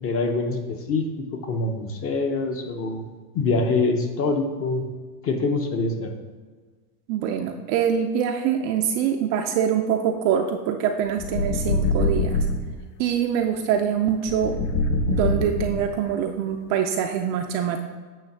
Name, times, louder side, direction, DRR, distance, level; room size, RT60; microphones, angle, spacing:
voice 1, 0.0-3.1 3.3-4.8 5.2-6.1, left 3 dB, 25° left, 5 dB, 0.7 m, -25 dB
voice 2, 7.1-12.5 13.0-14.6 15.1-17.8, right 8 dB, 35° right, 3 dB, 0.4 m, -24 dB
sound 1, 11.2-12.8 14.3-16.1, left 2 dB, 55° left, 0.9 m, -24 dB
8.9 x 3.2 x 6.5 m, 1.4 s
supercardioid pair, 145°, 49 cm